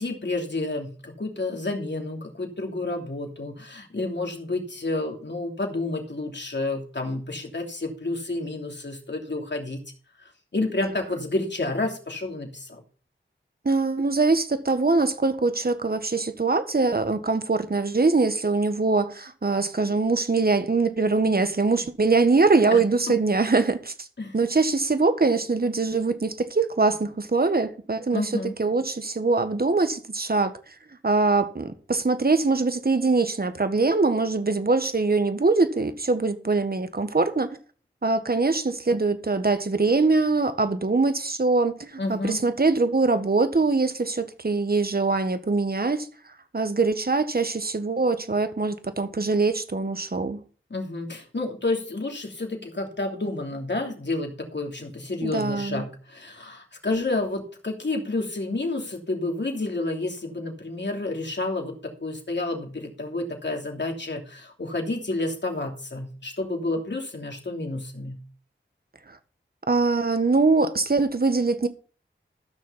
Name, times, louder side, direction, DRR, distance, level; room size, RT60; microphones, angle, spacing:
voice 1, 0.0-9.8 10.5-12.8 22.7-22.8 24.2-24.4 28.1-28.5 42.0-42.4 50.7-68.2, left 2 dB, 60° left, 2.9 m, -30 dB
voice 2, 13.6-24.1 24.3-28.3 28.6-30.5 31.0-37.6 38.0-46.1 46.5-50.4 55.2-55.8 69.7-71.7, right 3 dB, 50° right, 1.5 m, -23 dB
14.0 x 6.4 x 5.6 m
wide cardioid pair, 45°, 21 cm